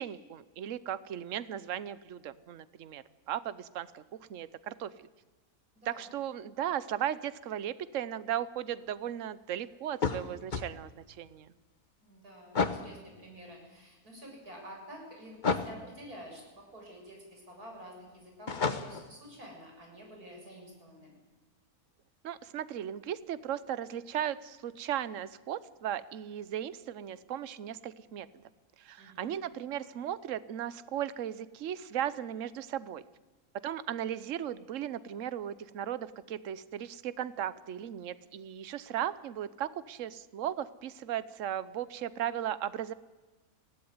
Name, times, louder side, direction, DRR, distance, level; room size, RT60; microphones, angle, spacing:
voice 1, 0.0-5.1 5.9-11.5 22.2-28.3 28.8-33.0 33.6-42.9, right 10 dB, 60° right, 16 dB, 1.2 m, -36 dB
voice 2, 5.7-6.1 12.0-21.2 29.0-29.3, equal, 85° right, 0 dB, 7.3 m, -49 dB
sound 1, 9.9-10.7 12.5-12.9 15.4-15.8 18.5-19.1, left 4 dB, 35° left, 1.1 m, -30 dB
21.5 x 16.5 x 9.6 m, 1.2 s
omnidirectional pair, 1.6 m